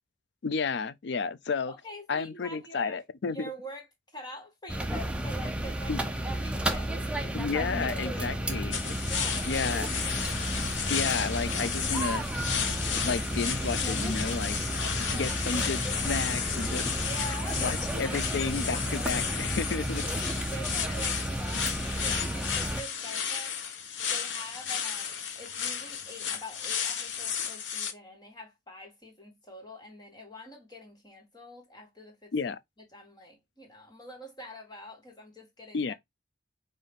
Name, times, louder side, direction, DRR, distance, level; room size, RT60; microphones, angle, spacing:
voice 1, 0.4-1.7 2.1-3.5 5.9-6.0 7.3-8.9 9.5-9.9 10.9-12.3 13.0-14.6 15.1-16.9 17.6-20.0 32.3-32.6 35.7-35.9, left 5 dB, 65° left, 0.4 m, -32 dB
voice 2, 1.7-7.4 8.0-8.7 9.0-9.7 10.0-10.2 15.0-15.4 17.0-19.1 20.3-32.5 32.9-35.9, equal, 20° left, 1.6 m, -45 dB
sound 1, 4.7-22.8, right 1 dB, 5° right, 0.5 m, -32 dB
sound 2, 8.7-27.9, left 7 dB, 80° left, 0.9 m, -33 dB
5.4 x 2.6 x 3.6 m
head